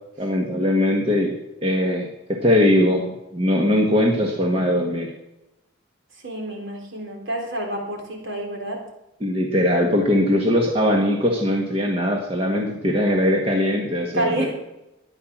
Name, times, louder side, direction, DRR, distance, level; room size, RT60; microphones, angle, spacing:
voice 1, 0.2-1.3 1.6-3.0 3.3-5.1 9.2-14.5, left 1 dB, 25° right, 0 dB, 1.5 m, -20 dB
voice 2, 6.2-8.8 14.1-14.5, right 1 dB, 60° right, 1 dB, 3.9 m, -28 dB
14.0 x 10.0 x 6.1 m, 0.94 s
head